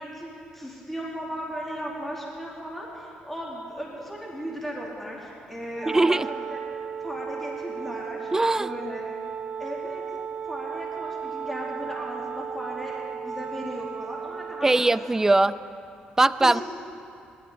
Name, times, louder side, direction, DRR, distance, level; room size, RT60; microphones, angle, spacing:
voice 1, 0.0-6.6 7.0-9.1 9.6-10.0 10.5-14.8 16.4-16.6, equal, 5° left, -4 dB, 2.8 m, -36 dB
Wind instrument woodwind instrument, 5.7-15.0, right 7 dB, 40° right, 0.9 m, -35 dB
voice 2, 5.9-6.3 8.3-8.7 14.6-15.5 16.2-16.6, right 2 dB, 15° right, 15 dB, 0.4 m, -20 dB
19.5 x 12.5 x 3.9 m, 2.5 s
cardioid pair, 80°, 4 cm